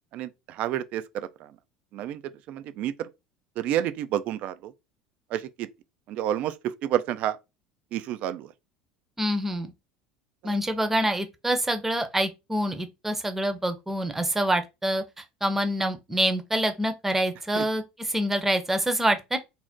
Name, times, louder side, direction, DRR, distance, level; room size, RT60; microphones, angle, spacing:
voice 1, 0.1-1.5 1.9-2.2 2.5-3.1 3.6-4.7 5.3-5.7 6.1-7.4 7.9-8.5 10.4-10.6 17.6-17.7, right 11 dB, 55° right, 0.3 m, -30 dB
voice 2, 9.2-9.7 10.4-19.4, right 1 dB, 10° right, 0.6 m, -26 dB
2.6 x 2.1 x 3.5 m
hypercardioid pair, 75°, 3 cm